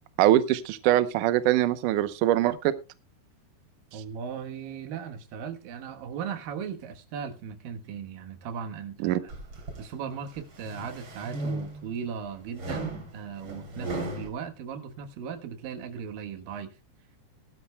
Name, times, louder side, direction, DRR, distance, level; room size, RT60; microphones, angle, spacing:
voice 1, 0.2-2.7 9.0-9.2, right 13 dB, 85° right, 1.8 m, -23 dB
voice 2, 3.9-9.3 9.8-16.7, right 7 dB, 65° right, 2.7 m, -37 dB
sound 1, 9.3-9.8 10.4-12.0 12.6-14.3, right 2 dB, 35° right, 3.4 m, -36 dB
19.0 x 12.5 x 2.2 m
omnidirectional pair, 4.9 m